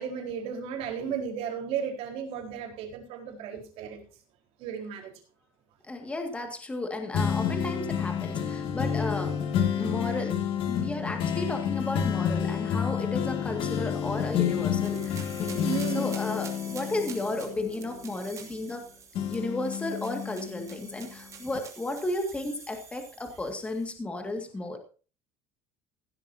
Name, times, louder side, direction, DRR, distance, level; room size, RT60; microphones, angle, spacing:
voice 1, 0.0-4.0 4.6-5.1 9.8-9.9 15.5-16.1, right 7 dB, 60° right, 3 dB, 4.3 m, -34 dB
voice 2, 5.9-9.4 9.7-10.4 10.7-15.6 15.9-18.8 19.3-24.8, left 2 dB, 10° left, 5 dB, 2.0 m, -33 dB
sound 1, 7.1-18.8 19.1-21.0 21.5-21.6, left 8 dB, 50° left, 2.3 m, -30 dB
sound 2, 13.9-23.9, right 6 dB, 25° right, 2.8 m, -48 dB
16.5 x 12.5 x 2.8 m, 0.37 s
cardioid pair, 170°, 12 cm